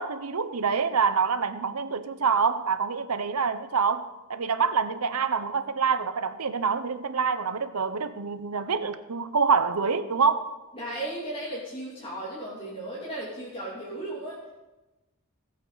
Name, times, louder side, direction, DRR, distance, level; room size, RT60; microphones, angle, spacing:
voice 1, 0.0-10.5, right 5 dB, 80° right, 11 dB, 0.8 m, -26 dB
voice 2, 10.7-14.4, right 1 dB, 25° left, -8 dB, 2.9 m, -35 dB
18.5 x 7.9 x 4.0 m, 1.1 s
head